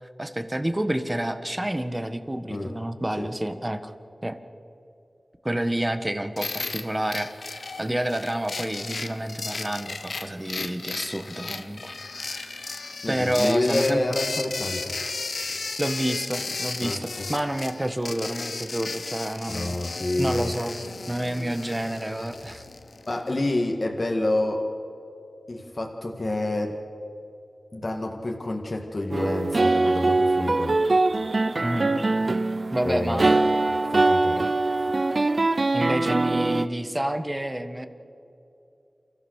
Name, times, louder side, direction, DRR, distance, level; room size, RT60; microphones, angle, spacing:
voice 1, 0.2-3.9 4.2-4.4 5.4-12.6 13.1-14.0 15.8-20.7 21.1-22.6 31.6-32.0 32.7-33.3 35.7-37.9, right 1 dB, 20° right, 9 dB, 1.6 m, -29 dB
sound 1, 6.4-23.3, left 3 dB, 80° left, 1.1 m, -35 dB
voice 2, 13.0-15.0 16.8-17.3 19.5-20.5 23.1-24.7 25.5-26.8 27.7-30.8 32.8-33.5 33.9-34.5, left 2 dB, 45° left, 2 dB, 1.9 m, -28 dB
sound 2, 29.1-36.7, right 2 dB, 55° right, 0.7 m, -23 dB
29.5 x 14.5 x 6.5 m, 2.7 s
wide cardioid pair, 55°, 0 cm